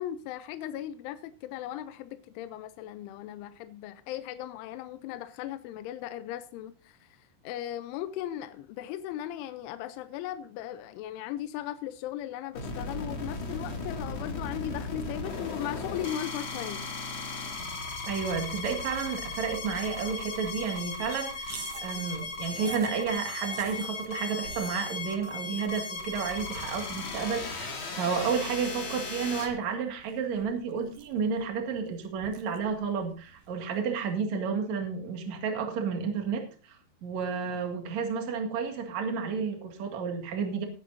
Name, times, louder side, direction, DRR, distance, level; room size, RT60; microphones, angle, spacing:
voice 1, 0.0-7.0 7.4-16.9, left 11 dB, 85° left, 3.1 m, -37 dB
sound 1, 12.5-29.5, left 3 dB, 45° left, 1.7 m, -37 dB
voice 2, 18.1-36.8 37.0-40.7, right 6 dB, 45° right, 2.6 m, -31 dB
sound 2, 21.4-33.9, right 6 dB, 70° right, 1.9 m, -49 dB
19.0 x 9.9 x 2.7 m
omnidirectional pair, 5.6 m